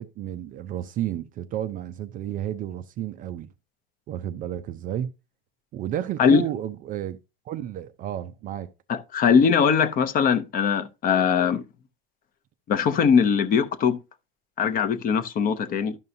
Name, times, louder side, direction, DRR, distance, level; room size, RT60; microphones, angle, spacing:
voice 1, 0.0-3.5 4.1-5.1 5.7-7.2 7.5-8.7, right 11 dB, 30° right, 0.3 m, -31 dB
voice 2, 8.9-11.6 12.7-14.0 14.6-16.0, left 6 dB, 30° left, 0.6 m, -21 dB
12.0 x 5.4 x 2.6 m
supercardioid pair, 140°, 30 cm